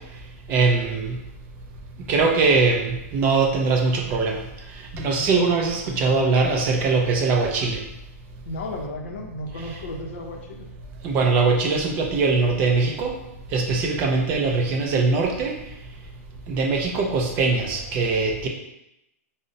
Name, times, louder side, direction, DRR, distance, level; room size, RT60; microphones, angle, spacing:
voice 1, 0.5-1.2 2.0-7.8 11.0-13.2 13.5-15.6 16.5-18.5, right 4 dB, 20° right, 1 dB, 0.4 m, -22 dB
voice 2, 8.5-10.6, left 1 dB, 50° left, 1 dB, 0.6 m, -33 dB
5.0 x 2.0 x 2.6 m, 0.86 s
hypercardioid pair, 170°, 8 cm